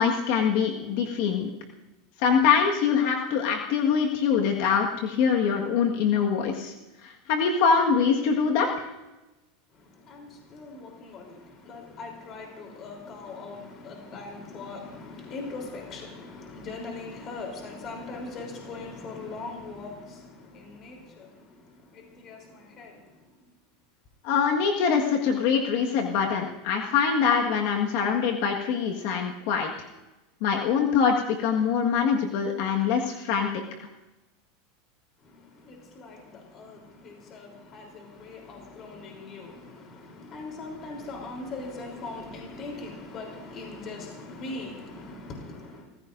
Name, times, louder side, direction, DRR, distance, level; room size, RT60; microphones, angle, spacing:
voice 1, 0.0-1.5 2.2-6.7 7.0-8.9 24.2-29.9 30.4-33.5, left 6 dB, 60° left, 1.6 m, -24 dB
voice 2, 9.7-23.4 35.2-45.9, left 3 dB, 35° left, 3.5 m, -41 dB
29.0 x 15.0 x 2.6 m
supercardioid pair, 145°, 0 cm